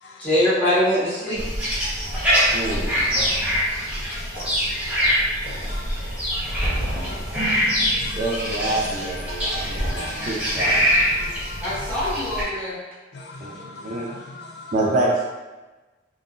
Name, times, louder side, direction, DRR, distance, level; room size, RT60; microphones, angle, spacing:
voice 1, 0.2-1.4 11.6-12.8, left 1 dB, 10° left, -13 dB, 1.4 m, -22 dB
sound 1, 1.4-12.4, equal, 10° right, 0.8 m, -24 dB
voice 2, 1.8-2.7 3.2-8.4 8.7-11.8 13.1-14.7, left 3 dB, 60° left, 0 dB, 0.3 m, -41 dB
voice 3, 2.5-2.9 8.2-10.8 13.4-14.1 14.7-15.2, right 2 dB, 40° right, -3 dB, 0.4 m, -26 dB
3.6 x 2.6 x 2.4 m, 1.2 s
head